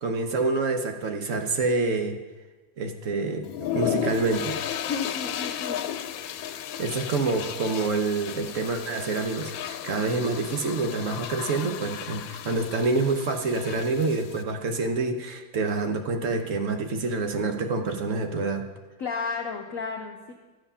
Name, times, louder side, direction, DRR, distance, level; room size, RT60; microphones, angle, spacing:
voice 1, 0.0-2.2 2.8-4.6 6.8-18.7, right 3 dB, 50° right, 5 dB, 1.0 m, -27 dB
sound 1, 3.4-14.4, left 10 dB, 85° left, 1.4 m, -34 dB
voice 2, 4.9-5.9 19.0-20.3, left 5 dB, 60° left, 3 dB, 0.9 m, -32 dB
12.5 x 7.9 x 5.6 m, 1.2 s
omnidirectional pair, 2.1 m